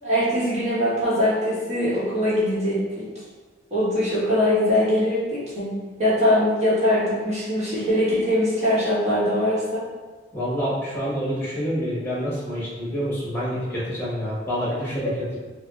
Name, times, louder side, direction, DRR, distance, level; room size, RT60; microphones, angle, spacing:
voice 1, 0.0-3.0 3.7-5.7 6.0-9.8, left 1 dB, 35° right, -10 dB, 1.2 m, -22 dB
voice 2, 10.3-15.4, equal, 15° left, -7 dB, 1.1 m, -27 dB
5.3 x 2.1 x 2.4 m, 1.3 s
head